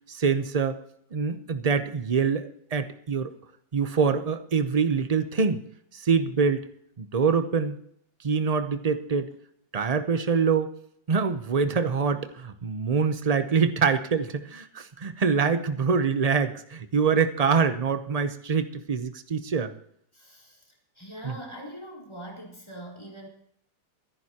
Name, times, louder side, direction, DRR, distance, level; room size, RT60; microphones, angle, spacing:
voice 1, 0.1-0.8 1.1-3.3 3.7-5.6 5.9-6.7 7.0-7.8 8.2-9.3 9.7-10.7 11.1-19.7 21.2-21.3, right 5 dB, 65° right, 9 dB, 0.3 m, -25 dB
voice 2, 20.1-23.3, equal, 15° left, -1 dB, 4.1 m, -42 dB
24.0 x 11.0 x 2.9 m, 0.69 s
omnidirectional pair, 1.9 m